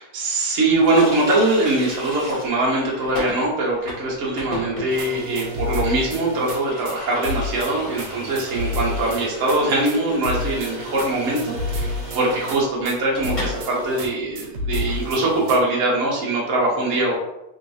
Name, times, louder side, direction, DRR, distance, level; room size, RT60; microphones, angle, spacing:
voice 1, 0.0-17.1, right 2 dB, 55° right, -4 dB, 1.0 m, -22 dB
Water tap faucet, 0.7-13.6 13.9-14.0 14.3-15.0, left 1 dB, 20° left, 1.3 m, -36 dB
sound 1, 4.9-6.6 6.9-7.0 7.2-9.6 9.9-10.0 10.2-13.0 13.2-14.1 14.4-15.6, left 1 dB, 75° right, 1.2 m, -29 dB
3.1 x 2.9 x 2.6 m, 0.88 s
omnidirectional pair, 2.1 m